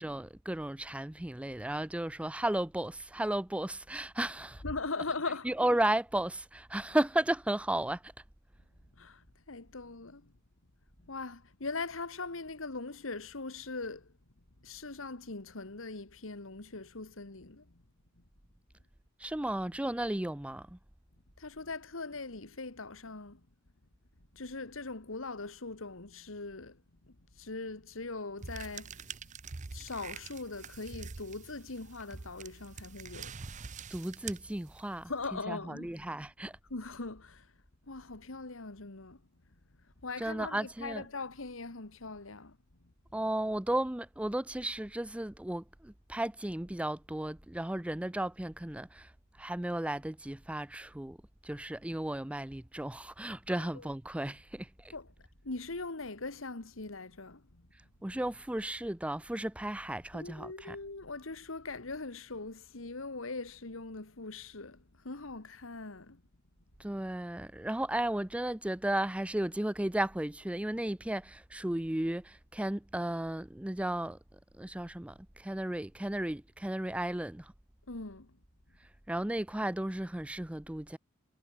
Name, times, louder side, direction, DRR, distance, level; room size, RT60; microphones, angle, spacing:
voice 1, 0.0-4.6 5.4-8.1 19.2-20.8 33.9-36.5 40.2-41.1 43.1-49.1 49.4-51.2 51.4-54.7 58.0-60.8 66.8-74.2 74.6-77.5 79.1-81.0, right 1 dB, 5° right, 0.5 m, -34 dB
voice 2, 4.6-5.6 9.0-10.3 11.0-14.1 14.6-17.8 21.4-23.5 24.3-29.4 29.7-33.4 35.1-35.9 36.7-37.5 37.9-39.2 39.8-42.6 42.8-42.9 53.5-53.9 54.9-57.7 58.1-58.2 60.1-66.2 77.9-78.4, left 3 dB, 90° left, 1.9 m, -41 dB
sound 1, 28.4-35.1, right 5 dB, 40° right, 0.7 m, -45 dB
head